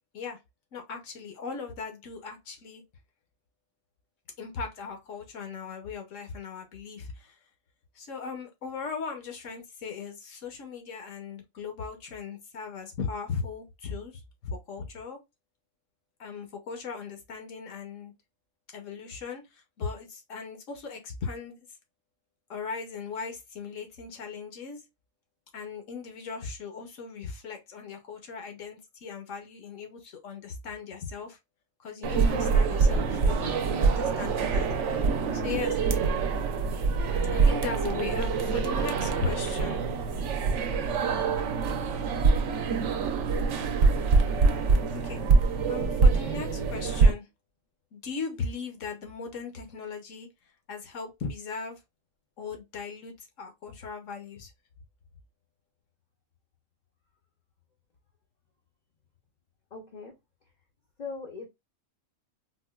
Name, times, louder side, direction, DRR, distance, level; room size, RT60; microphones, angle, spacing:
voice 1, 0.7-2.8 4.4-7.3 7.9-15.2 16.2-18.1 18.7-21.7 22.5-24.8 25.5-31.4 31.8-34.7 35.3-35.8 37.3-39.8 44.9-45.2 45.7-47.3 47.9-50.3 50.7-51.8 52.4-54.5, left 5 dB, 75° left, 1.2 m, -38 dB
sound 1, 32.0-47.1, right 4 dB, 70° right, 0.9 m, -25 dB
voice 2, 59.7-60.2 61.0-61.5, left 4 dB, 45° left, 0.6 m, -39 dB
4.1 x 2.2 x 2.2 m
omnidirectional pair, 1.3 m